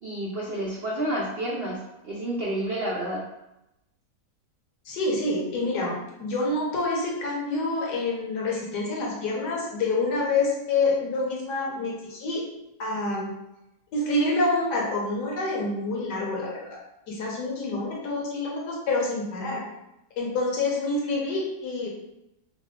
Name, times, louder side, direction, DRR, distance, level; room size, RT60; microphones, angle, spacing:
voice 1, 0.0-3.2, right 1 dB, 85° right, -4 dB, 0.5 m, -30 dB
voice 2, 4.8-12.5 12.8-13.3 13.9-16.8 17.1-19.6 20.2-21.9, left 2 dB, 75° left, -3 dB, 1.4 m, -27 dB
3.4 x 2.1 x 3.6 m, 0.89 s
omnidirectional pair, 1.8 m